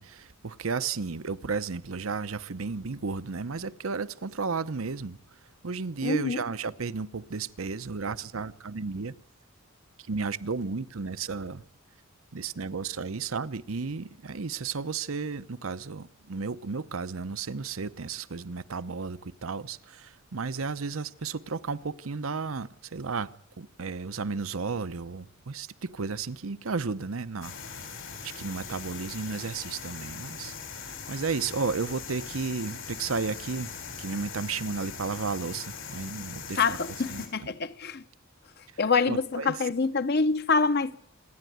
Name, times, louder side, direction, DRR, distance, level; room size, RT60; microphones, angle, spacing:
voice 1, 0.0-5.2 5.6-9.1 10.1-11.6 12.3-27.5 27.8-27.9 28.2-33.7 34.0-36.8 37.1-37.5 39.1-39.6, right 4 dB, 85° right, 0.8 m, -33 dB
voice 2, 6.0-6.4 36.6-38.0 38.8-41.0, left 4 dB, 50° left, 0.9 m, -26 dB
sound 1, 27.4-37.3, left 6 dB, 80° left, 4.7 m, -41 dB
26.5 x 10.5 x 9.4 m
head